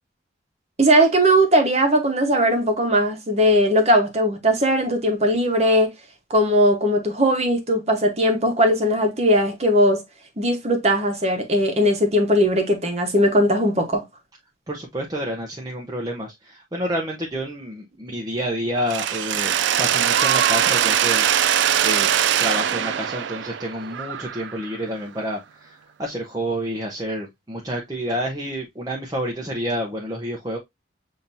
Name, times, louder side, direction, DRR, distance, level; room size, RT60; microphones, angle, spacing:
voice 1, 0.8-5.9 6.3-10.0 10.4-14.0, equal, 35° right, 1.1 m, -19 dB
voice 2, 14.7-22.1 22.4-30.6, equal, 20° right, 0.7 m, -29 dB
Mechanisms, 18.9-24.8, right 9 dB, 75° right, 0.3 m, -21 dB
6.9 x 2.9 x 2.6 m
head